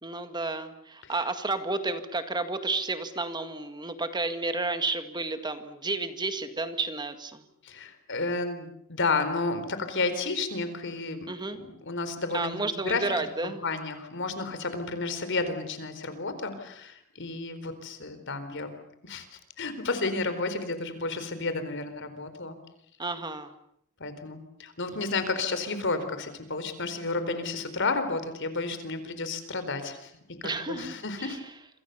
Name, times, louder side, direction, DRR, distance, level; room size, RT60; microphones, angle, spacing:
voice 1, 0.0-7.4 11.3-11.6 12.3-13.6 23.0-23.5 30.4-31.4, right 3 dB, 20° right, 8 dB, 2.0 m, -31 dB
voice 2, 7.6-18.7 19.0-22.6 24.0-31.4, left 3 dB, 60° left, 10 dB, 4.4 m, -32 dB
28.0 x 26.5 x 7.0 m, 0.73 s
head